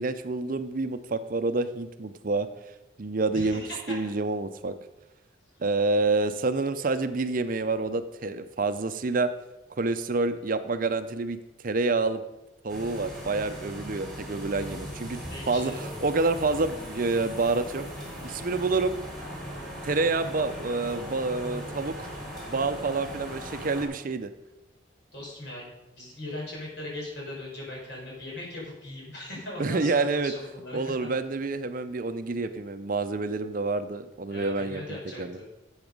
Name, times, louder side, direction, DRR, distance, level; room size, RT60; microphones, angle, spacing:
voice 1, 0.0-2.5 3.0-3.6 3.9-4.7 5.6-9.3 9.8-11.4 11.6-12.2 12.6-15.2 15.5-17.8 18.2-18.9 19.8-22.1 22.5-24.3 29.6-30.3 30.7-34.8 35.2-35.4, right 3 dB, 45° right, 10 dB, 0.5 m, -28 dB
voice 2, 3.3-3.9 14.6-15.9 20.0-20.3 23.1-23.3 25.1-25.7 25.9-30.9 34.3-35.4, left 1 dB, 60° left, -4 dB, 5.0 m, -39 dB
sound 1, 12.7-23.8, equal, ahead, 3.6 m, -39 dB
11.0 x 8.0 x 5.3 m, 0.96 s
head